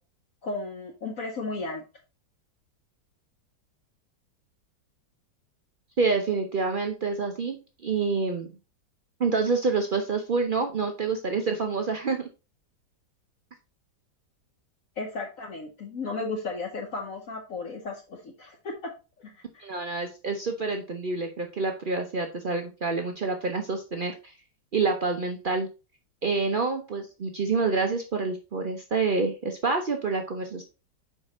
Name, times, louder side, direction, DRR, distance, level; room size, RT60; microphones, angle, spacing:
voice 1, 0.4-1.8 15.0-18.9 19.2-19.6, left 3 dB, 55° left, 2 dB, 1.1 m, -34 dB
voice 2, 6.0-7.6 7.8-8.5 9.2-12.3 19.6-24.3 24.7-25.7 26.2-30.6, right 4 dB, 85° right, 4 dB, 0.4 m, -27 dB
5.7 x 4.6 x 4.1 m, 0.31 s
omnidirectional pair, 2.0 m